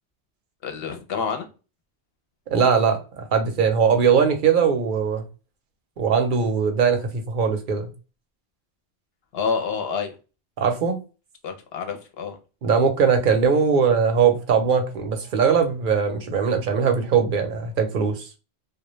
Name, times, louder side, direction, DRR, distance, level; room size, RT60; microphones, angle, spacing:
voice 1, 0.6-1.5 9.3-10.2 11.4-12.4, left 5 dB, 65° left, 0.8 m, -28 dB
voice 2, 2.5-5.2 6.0-7.9 10.6-11.0 12.6-18.3, right 6 dB, 55° right, 0.7 m, -20 dB
2.2 x 2.1 x 3.0 m
omnidirectional pair, 1.2 m